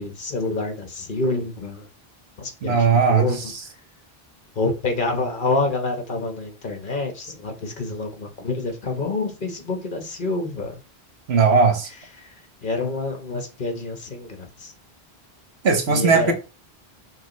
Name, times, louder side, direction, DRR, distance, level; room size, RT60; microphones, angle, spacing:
voice 1, 0.0-1.9 2.4-3.5 4.5-10.8 12.2-12.3 12.6-14.7 15.9-16.3, left 3 dB, 55° left, 1.2 m, -27 dB
voice 2, 2.6-3.2 11.3-11.9 15.6-16.3, right 5 dB, 85° right, 1.2 m, -17 dB
6.0 x 2.5 x 3.0 m
omnidirectional pair, 1.1 m